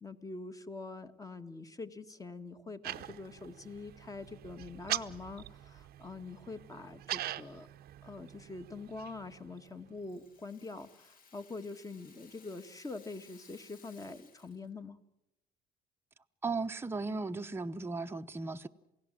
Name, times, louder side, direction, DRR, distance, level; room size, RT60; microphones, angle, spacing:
voice 1, 0.0-7.7 8.0-15.0, left 3 dB, 20° left, 1.6 m, -45 dB
sound 1, 2.8-10.1, right 14 dB, 65° right, 0.8 m, -43 dB
Rattle (instrument), 9.7-14.7, left 5 dB, 60° left, 3.5 m, -61 dB
voice 2, 16.4-18.7, right 3 dB, 15° right, 0.9 m, -36 dB
28.5 x 17.0 x 7.6 m
cardioid pair, 110°, 17 cm